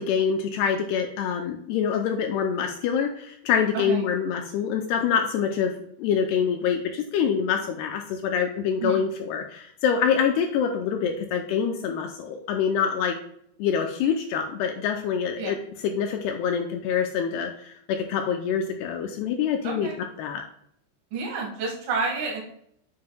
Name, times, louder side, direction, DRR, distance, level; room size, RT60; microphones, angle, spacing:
voice 1, 0.0-13.2 13.6-19.9 20.2-20.4, left 7 dB, 85° left, 4 dB, 2.3 m, -25 dB
voice 2, 19.6-20.0 21.1-22.4, right 4 dB, 60° right, -2 dB, 2.7 m, -29 dB
7.6 x 7.4 x 2.3 m, 0.70 s
omnidirectional pair, 5.2 m